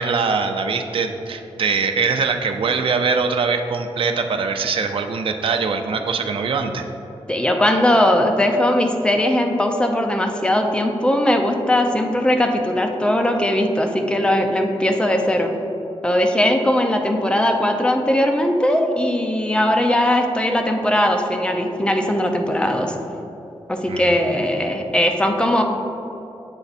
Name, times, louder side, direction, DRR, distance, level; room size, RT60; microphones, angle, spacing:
voice 1, 0.0-6.8 23.9-24.2, right 5 dB, 60° right, 5 dB, 0.4 m, -22 dB
voice 2, 7.3-15.5 16.0-22.9 23.7-25.6, left 1 dB, 10° left, 3 dB, 0.5 m, -19 dB
8.1 x 3.4 x 4.1 m, 2.9 s
wide cardioid pair, 160°, 10 cm